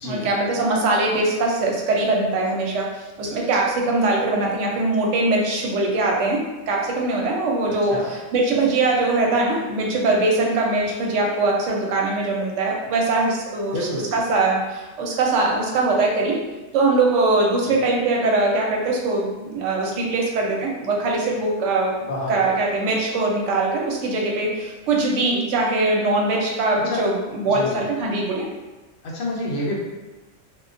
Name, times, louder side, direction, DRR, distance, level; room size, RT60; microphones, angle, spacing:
voice 1, 0.0-2.9 3.2-13.8 14.1-16.4 16.7-22.0 22.3-28.5, right 2 dB, 70° right, -1 dB, 0.8 m, -22 dB
voice 2, 13.7-14.3 17.6-17.8 22.1-22.7 26.8-27.0 27.5-27.8 29.0-29.8, left 1 dB, 60° left, -3 dB, 0.8 m, -29 dB
2.3 x 2.2 x 2.4 m, 1.2 s
omnidirectional pair, 1.4 m